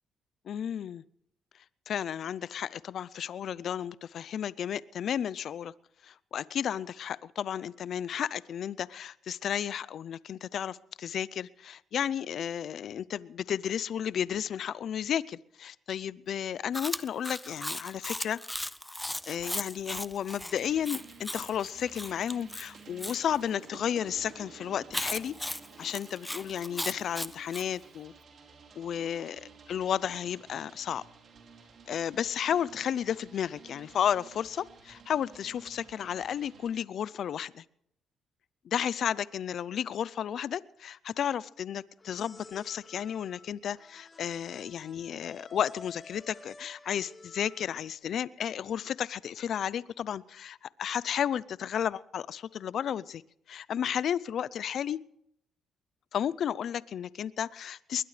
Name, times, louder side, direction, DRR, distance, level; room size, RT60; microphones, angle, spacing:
voice 1, 0.5-1.0 1.9-5.7 6.0-18.4 19.3-25.3 25.8-28.1 28.8-29.4 29.7-31.0 31.9-37.6 38.6-53.2 53.5-55.0 56.1-58.0, left 9 dB, 65° left, 20 dB, 0.5 m, -33 dB
Chewing mastication, 16.7-23.2 24.9-27.7, left 1 dB, 5° left, 0.5 m, -37 dB
sound 1, 20.5-36.7, right 5 dB, 55° right, 4.2 m, -53 dB
sound 2, 42.0-47.9, left 3 dB, 25° left, 4.1 m, -51 dB
21.0 x 20.5 x 3.3 m, 0.73 s
cardioid pair, 90°, 0 cm